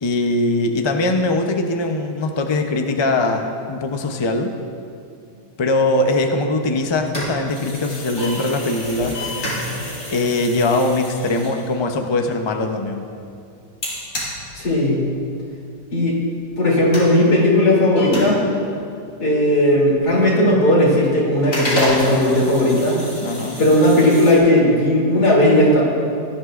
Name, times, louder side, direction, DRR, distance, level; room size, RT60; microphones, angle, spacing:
voice 1, 0.0-4.5 5.6-9.2 10.1-13.1 23.2-23.6, left 2 dB, 35° left, 4 dB, 0.4 m, -21 dB
sound 1, 7.1-12.2 13.8-15.2 15.5-15.6 16.0-16.1 16.4-17.1 18.0-18.9 19.3-20.5 20.9-21.1 21.3-24.4, left 1 dB, 55° left, 3.7 m, -28 dB
voice 2, 14.5-15.0 15.9-16.2 16.6-18.4 19.2-23.0 23.6-25.8, left 1 dB, 80° left, -5 dB, 3.6 m, -16 dB
19.0 x 11.0 x 2.5 m, 2.4 s
omnidirectional pair, 1.7 m